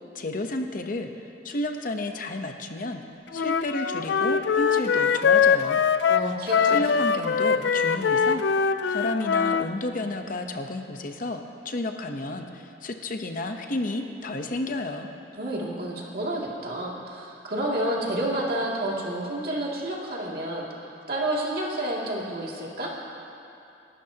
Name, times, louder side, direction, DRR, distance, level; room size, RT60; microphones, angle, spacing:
voice 1, 0.1-1.1 1.4-3.0 3.3-5.8 6.7-8.4 8.9-15.1, left 2 dB, 50° left, 5 dB, 0.9 m, -31 dB
Wind instrument woodwind instrument, 3.3-9.7, left 6 dB, 75° left, 0.4 m, -22 dB
voice 2, 6.1-6.8 15.3-20.7 21.1-22.9, right 1 dB, 55° right, -3 dB, 2.5 m, -29 dB
28.0 x 12.5 x 2.9 m, 2.7 s
head